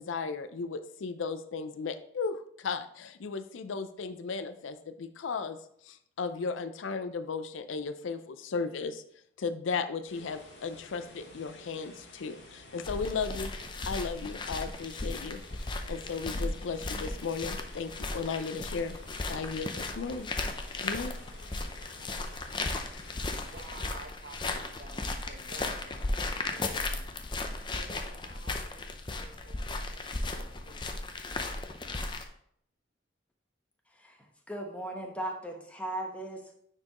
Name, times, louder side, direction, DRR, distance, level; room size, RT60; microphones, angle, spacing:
voice 1, 0.0-5.6 5.9-9.0 9.4-13.5 13.8-15.4 15.9-19.0 19.3-20.3 20.8-21.2, left 5 dB, 90° left, 11 dB, 0.5 m, -35 dB
sound 1, 10.1-23.6, left 2 dB, 65° left, 1.9 m, -52 dB
sound 2, 12.8-32.2, left 2 dB, 25° left, 0.5 m, -36 dB
voice 2, 23.4-30.9, right 3 dB, 55° right, 4 dB, 0.9 m, -52 dB
voice 3, 34.0-36.5, right 1 dB, 5° left, 2 dB, 0.9 m, -38 dB
9.5 x 4.5 x 3.0 m, 0.69 s
head